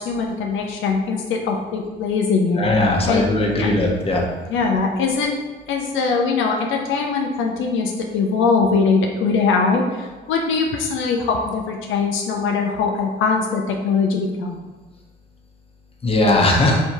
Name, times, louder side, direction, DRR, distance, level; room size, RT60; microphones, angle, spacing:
voice 1, 0.0-2.6 3.1-3.2 3.6-3.7 4.5-5.4 5.7-14.6, left 4 dB, 80° left, 1 dB, 0.5 m, -21 dB
voice 2, 2.6-4.2 16.0-16.8, left 2 dB, 30° left, -1 dB, 0.9 m, -18 dB
3.3 x 2.7 x 4.5 m, 1.3 s
cardioid pair, 90°, 20 cm